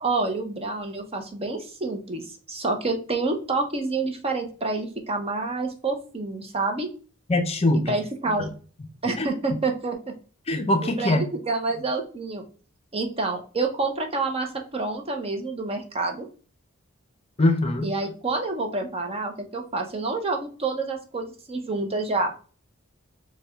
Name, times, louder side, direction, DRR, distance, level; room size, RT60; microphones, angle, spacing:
voice 1, 0.0-2.2 2.5-6.9 7.7-8.5 9.0-10.1 10.8-12.5 12.9-16.3 17.8-22.3, right 3 dB, 30° right, 0.8 m, -28 dB
voice 2, 7.3-8.0 8.4-8.5 9.1-9.3 10.5-11.2 17.4-17.9, left 2 dB, 30° left, 0.5 m, -22 dB
6.6 x 2.3 x 3.4 m
head